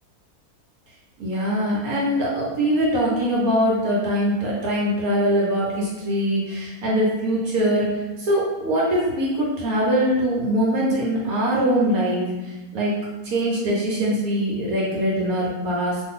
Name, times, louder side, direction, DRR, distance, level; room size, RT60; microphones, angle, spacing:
voice 1, 1.2-12.9 13.2-16.0, equal, 70° right, -5 dB, 1.1 m, -22 dB
2.6 x 2.5 x 3.5 m, 1.1 s
omnidirectional pair, 1.6 m